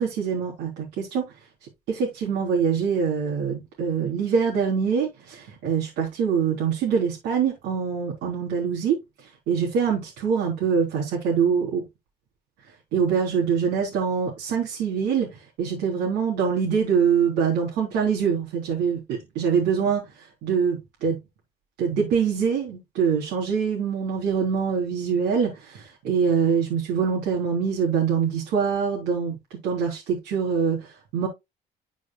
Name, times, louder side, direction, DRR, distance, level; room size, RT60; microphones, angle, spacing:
voice 1, 0.0-1.3 1.9-11.8 12.9-21.2 21.8-29.4 29.6-31.3, right 6 dB, 85° right, 3.7 m, -24 dB
12.5 x 6.2 x 2.3 m
cardioid pair, 110°, 17 cm